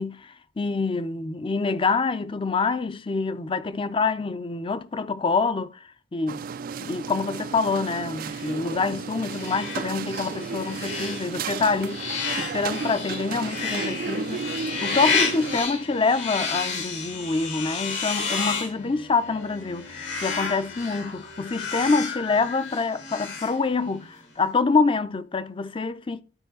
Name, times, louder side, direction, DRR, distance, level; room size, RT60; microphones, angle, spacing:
voice 1, 0.0-5.8 6.1-6.4 6.8-12.1 12.4-26.2, left 4 dB, 30° left, 0.5 m, -26 dB
sound 1, 6.3-15.6, right 5 dB, 50° right, 0.3 m, -33 dB
sound 2, 8.2-24.1, left 5 dB, 85° left, 3.3 m, -32 dB
11.5 x 4.7 x 3.7 m
head